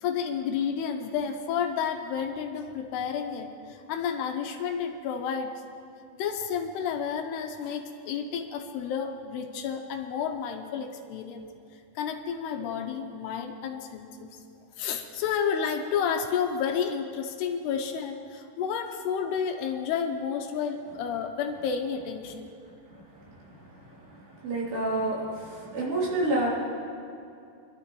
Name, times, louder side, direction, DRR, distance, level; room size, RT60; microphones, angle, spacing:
voice 1, 0.0-5.5 6.2-11.5 12.0-14.3 14.8-22.5, left 7 dB, 80° left, 5 dB, 2.8 m, -31 dB
voice 2, 24.4-25.2 25.7-26.5, right 2 dB, 75° right, -7 dB, 5.4 m, -27 dB
25.5 x 12.0 x 3.1 m, 2.5 s
omnidirectional pair, 4.9 m